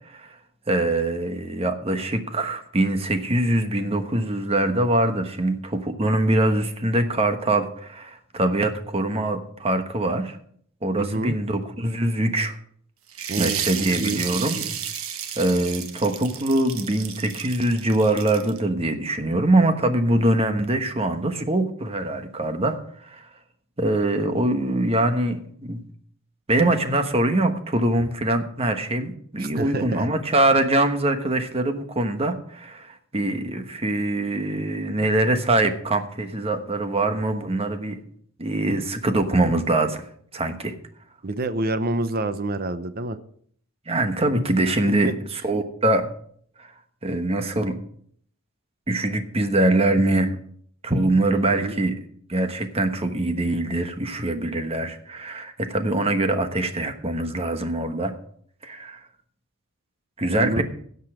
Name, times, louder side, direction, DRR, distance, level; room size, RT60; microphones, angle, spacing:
voice 1, 0.7-10.4 10.8-12.5 13.4-14.8 15.4-23.3 23.8-25.8 26.5-38.0 38.4-40.0 40.3-40.7 43.9-46.1 46.6-46.7 47.0-47.8 48.9-50.4 50.8-51.9 52.3-58.1 58.6-59.0 60.2-60.6, right 1 dB, 30° right, 7 dB, 1.2 m, -23 dB
voice 2, 11.0-11.4 13.3-13.6 14.0-14.2 29.4-30.1 41.2-43.2 45.0-45.1 51.3-51.7 60.3-60.6, right 2 dB, 45° right, 12 dB, 0.8 m, -27 dB
sound 1, 13.1-18.6, right 9 dB, 85° right, 1.2 m, -32 dB
16.5 x 5.5 x 6.1 m, 0.62 s
head